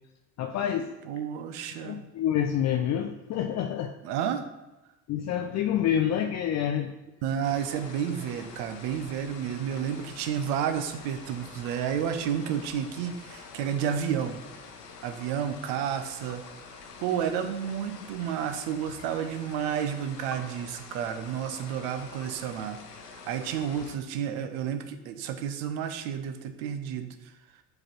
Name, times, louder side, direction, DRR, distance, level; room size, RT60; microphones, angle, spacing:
voice 1, 0.4-0.9 1.8-3.9 5.1-6.9, left 9 dB, 35° left, 6 dB, 0.5 m, -27 dB
voice 2, 1.1-2.1 4.0-4.4 7.2-14.4 15.0-16.4 17.0-22.8 23.1-27.1, right 8 dB, 60° right, 8 dB, 0.8 m, -31 dB
sound 1, 7.4-24.0, left 5 dB, 85° left, 0.8 m, -46 dB
6.3 x 4.9 x 4.4 m, 1.0 s
figure-of-eight pair, 60°, 47 cm